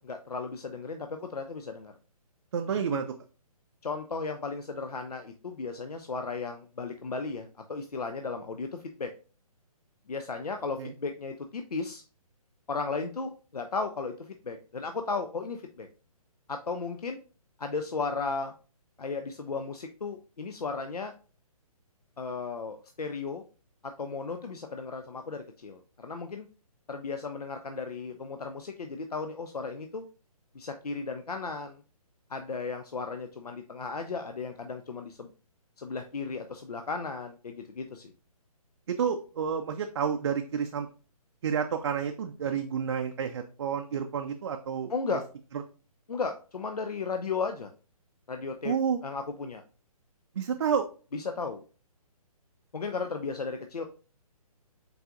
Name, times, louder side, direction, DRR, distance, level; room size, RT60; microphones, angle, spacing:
voice 1, 0.0-1.9 2.9-3.0 3.8-9.1 10.1-12.0 12.7-15.9 16.5-17.2 17.6-18.5 19.0-21.1 22.2-23.4 23.8-26.5 26.9-30.0 30.5-31.8 32.3-35.3 35.8-38.1 42.5-42.6 44.9-45.2 46.1-47.7 48.3-48.8 49.0-49.6 51.1-51.6 52.7-53.9, left 4 dB, 80° left, 6 dB, 0.5 m, -35 dB
voice 2, 2.5-3.0 10.8-10.9 38.9-40.9 41.4-45.2 48.6-49.0 50.4-50.8, right 7 dB, 45° right, 4 dB, 0.4 m, -30 dB
5.4 x 4.0 x 2.4 m, 0.37 s
figure-of-eight pair, 135°, 19 cm